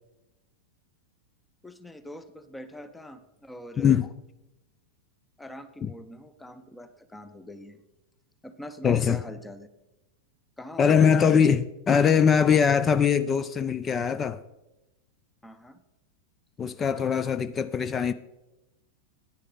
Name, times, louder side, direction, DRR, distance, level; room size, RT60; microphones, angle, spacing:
voice 1, 1.6-4.0 5.4-7.8 8.4-9.7 10.6-11.5 15.4-15.8, left 1 dB, 5° left, 0.7 m, -43 dB
voice 2, 3.8-4.1 5.8-5.9 8.8-9.2 10.8-14.4 16.6-18.1, left 7 dB, 20° left, 0.4 m, -22 dB
9.9 x 9.7 x 3.8 m
figure-of-eight pair, 90°, 0 cm